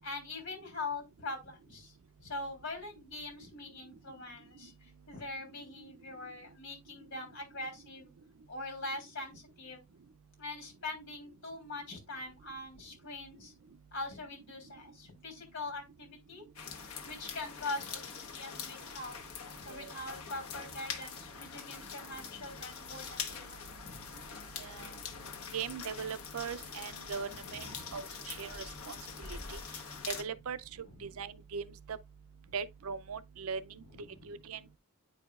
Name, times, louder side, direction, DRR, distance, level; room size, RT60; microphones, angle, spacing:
voice 1, 0.0-8.1 8.5-9.8 10.4-13.5 13.9-16.4 17.0-19.2 19.6-24.1 25.0-25.2 27.2-28.0 30.8-31.2 32.5-32.6 33.9-34.3, left 2 dB, 55° left, 3.4 m, -43 dB
sound 1, 16.6-30.2, left 6 dB, 90° left, 1.2 m, -44 dB
voice 2, 24.6-24.9 25.5-29.6 30.1-30.6 31.0-32.0 32.5-33.8 34.2-34.8, right 6 dB, 80° right, 0.5 m, -40 dB
9.2 x 4.9 x 2.4 m
head